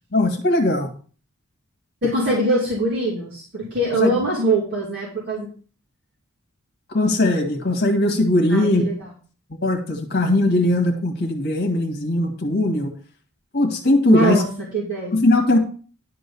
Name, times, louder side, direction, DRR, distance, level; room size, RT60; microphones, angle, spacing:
voice 1, 0.1-0.9 4.0-4.2 6.9-8.9 9.6-12.9 13.5-14.4 15.1-15.6, left 2 dB, 50° left, 3 dB, 1.8 m, -19 dB
voice 2, 2.0-5.5 8.5-9.1 14.1-15.2, right 1 dB, 50° right, -6 dB, 3.0 m, -23 dB
11.5 x 3.9 x 6.9 m, 0.40 s
head